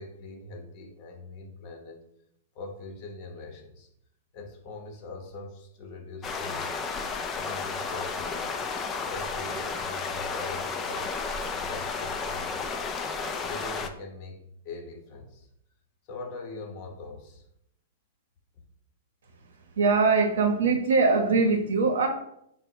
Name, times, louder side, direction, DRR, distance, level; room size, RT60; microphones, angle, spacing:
voice 1, 0.0-2.0 2.5-3.9 4.3-6.8 7.3-8.6 9.1-12.9 13.4-15.5 16.1-17.4 18.5-18.6, left 3 dB, 45° left, 3 dB, 0.8 m, -42 dB
sound 1, 6.2-13.9, left 4 dB, 25° left, 0.3 m, -32 dB
voice 2, 19.8-22.1, right 4 dB, 80° right, 4 dB, 0.7 m, -22 dB
3.8 x 2.1 x 4.3 m, 0.76 s
hypercardioid pair, 130°, 0 cm